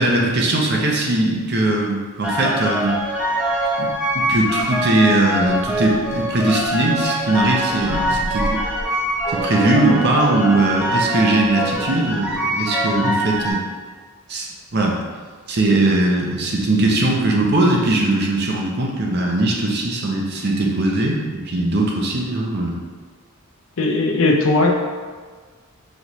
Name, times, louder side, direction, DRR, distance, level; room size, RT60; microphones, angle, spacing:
voice 1, 0.0-3.0 3.8-8.6 9.3-13.6 14.3-15.0 15.5-22.8, right 2 dB, 50° right, -1 dB, 0.7 m, -20 dB
sound 1, 2.2-13.5, equal, 5° right, 0.5 m, -23 dB
voice 2, 7.8-8.2 13.0-13.2 23.8-24.7, left 2 dB, 70° left, 1 dB, 0.6 m, -19 dB
4.0 x 3.3 x 3.0 m, 1.5 s
head